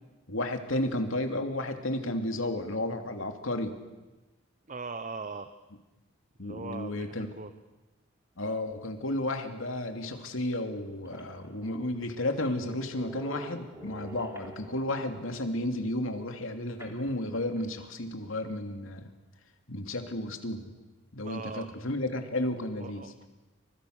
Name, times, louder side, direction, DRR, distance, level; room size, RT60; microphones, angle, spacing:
voice 1, 0.3-3.8 6.4-7.3 8.4-19.1 19.7-20.7 21.1-23.1, left 1 dB, 75° left, 6 dB, 2.8 m, -32 dB
voice 2, 4.7-5.5 6.4-7.5 21.2-21.7 22.8-23.3, right 4 dB, 35° right, 10 dB, 1.0 m, -40 dB
sound 1, 10.1-10.2 10.8-10.9 11.1-15.1 16.8-17.9, right 1 dB, 15° right, 3.3 m, -47 dB
29.0 x 25.5 x 6.7 m, 1.1 s
head